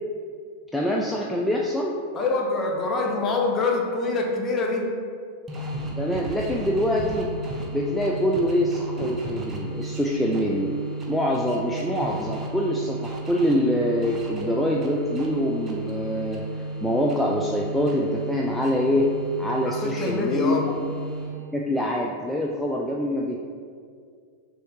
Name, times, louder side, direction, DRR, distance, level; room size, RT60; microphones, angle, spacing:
voice 1, 0.7-2.0 6.0-7.3 7.7-10.7 11.1-16.4 16.8-19.1 19.4-20.7 21.5-23.4, equal, 5° left, -2 dB, 0.3 m, -25 dB
voice 2, 2.1-5.0 19.6-20.7, left 3 dB, 25° left, 0 dB, 0.7 m, -25 dB
sound 1, 5.5-21.6, right 2 dB, 20° right, 0.7 m, -33 dB
6.3 x 2.7 x 3.0 m, 2.2 s
figure-of-eight pair, 90°, 0 cm